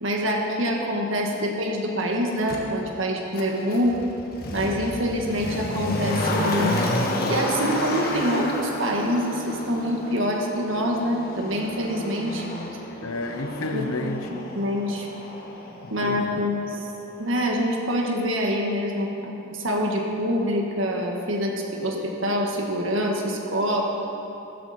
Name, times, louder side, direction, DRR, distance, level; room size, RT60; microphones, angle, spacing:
voice 1, 0.0-3.9 4.5-6.9 7.3-12.5 13.7-13.9 14.3-15.1 15.9-16.9 17.2-23.8, equal, 65° right, 0 dB, 1.6 m, -25 dB
Motor vehicle (road), 2.5-2.6 3.3-16.3 16.5-16.6, left 1 dB, 45° left, 1.4 m, -30 dB
voice 2, 13.0-14.3 16.0-16.4, left 2 dB, 90° left, 5 dB, 1.0 m, -30 dB
14.5 x 12.5 x 4.3 m, 2.9 s
head